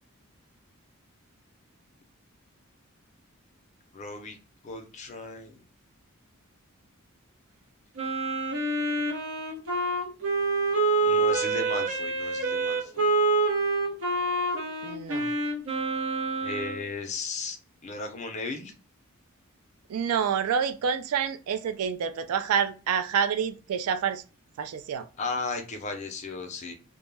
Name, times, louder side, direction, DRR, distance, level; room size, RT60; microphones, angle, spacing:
voice 1, 3.9-4.4 4.6-5.6 11.0-13.1 16.4-17.6 17.8-18.7 25.2-26.7, left 3 dB, 30° left, 5 dB, 0.4 m, -35 dB
Wind instrument woodwind instrument, 8.0-16.8, right 3 dB, 65° right, 0.7 m, -27 dB
voice 2, 14.8-15.3 19.9-24.2 24.6-25.1, right 7 dB, 90° right, 9 dB, 0.3 m, -28 dB
2.2 x 2.0 x 3.2 m, 0.33 s
head